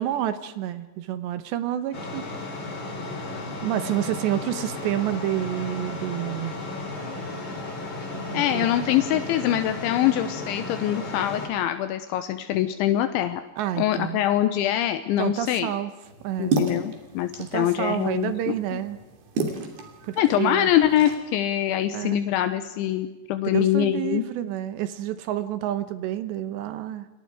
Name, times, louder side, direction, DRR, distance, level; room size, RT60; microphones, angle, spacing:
voice 1, 0.0-2.3 3.6-6.5 8.3-8.7 13.6-14.2 15.2-15.9 16.2-16.6 17.4-19.0 20.0-20.7 21.9-22.2 23.5-27.1, right 12 dB, 75° right, 11 dB, 3.1 m, -29 dB
sound 1, 1.9-11.5, left 2 dB, 25° left, 3.9 m, -34 dB
voice 2, 8.3-13.4 13.8-15.7 16.4-18.8 20.2-24.2, left 12 dB, 80° left, 9 dB, 3.3 m, -24 dB
sound 2, 16.0-21.2, right 3 dB, 55° right, 4.6 m, -32 dB
29.0 x 23.0 x 4.9 m, 1.1 s
omnidirectional pair, 5.4 m